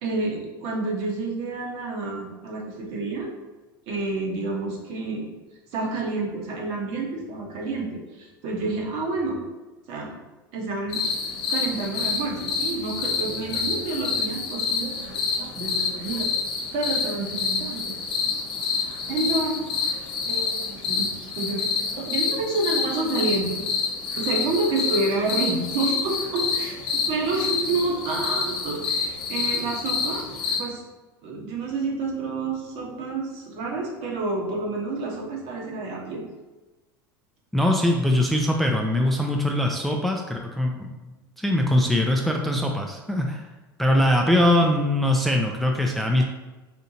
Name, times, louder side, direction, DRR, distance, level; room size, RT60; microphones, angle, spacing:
voice 1, 0.0-3.3 3.9-5.3 5.7-9.4 9.9-10.1 10.5-11.0 11.5-16.3 16.7-17.9 19.1-19.9 20.2-21.1 21.3-23.6 24.2-26.8 27.1-30.2 30.5-30.8 31.2-36.2, right 3 dB, 60° right, -1 dB, 1.1 m, -29 dB
sound 1, 10.9-30.6, left 5 dB, 50° left, 0.9 m, -28 dB
voice 2, 37.5-40.9 41.4-43.4 43.8-46.2, left 1 dB, ahead, 1 dB, 0.4 m, -22 dB
4.3 x 2.6 x 2.7 m, 1.2 s
hypercardioid pair, 95°, 12 cm